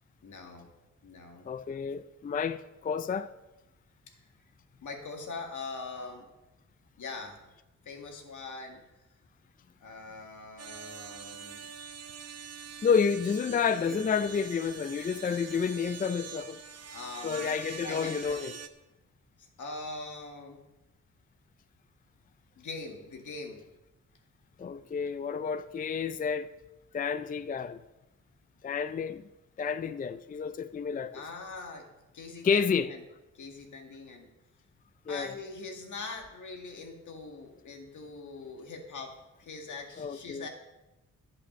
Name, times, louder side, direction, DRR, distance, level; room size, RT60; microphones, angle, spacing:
voice 1, 0.2-0.7 1.0-1.5 4.1-4.2 4.8-6.3 7.0-7.4 7.9-8.8 9.8-11.6 13.5-13.6 13.8-14.0 16.9-17.5 17.8-18.4 19.4-20.6 22.6-23.6 31.1-31.9 32.1-33.0 33.3-34.3 35.1-40.5, left 3 dB, 70° left, 2.2 m, -42 dB
voice 2, 1.5-3.3 12.8-16.6 17.2-18.5 24.6-26.5 26.9-27.8 28.6-29.2 29.6-31.2 32.4-32.9 35.1-35.3 40.0-40.5, left 6 dB, 30° left, 0.4 m, -30 dB
sound 1, 10.6-18.7, right 7 dB, 55° right, 0.9 m, -44 dB
11.0 x 8.5 x 6.4 m
wide cardioid pair, 110°, 31 cm